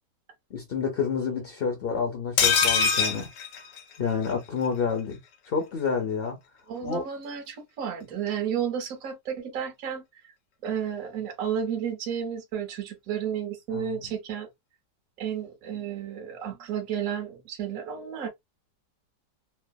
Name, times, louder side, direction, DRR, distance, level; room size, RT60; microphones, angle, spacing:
voice 1, 0.5-3.3 4.0-5.2 5.5-6.4 6.8-7.0 13.7-14.0, left 6 dB, 55° left, 0.6 m, -29 dB
sound 1, 2.4-4.3 4.6-4.7 5.0-5.1, left 6 dB, 90° left, 1.4 m, -24 dB
voice 2, 6.7-10.0 10.6-14.5 15.2-18.3, right 8 dB, 60° right, 1.2 m, -32 dB
3.3 x 2.0 x 2.2 m
omnidirectional pair, 1.8 m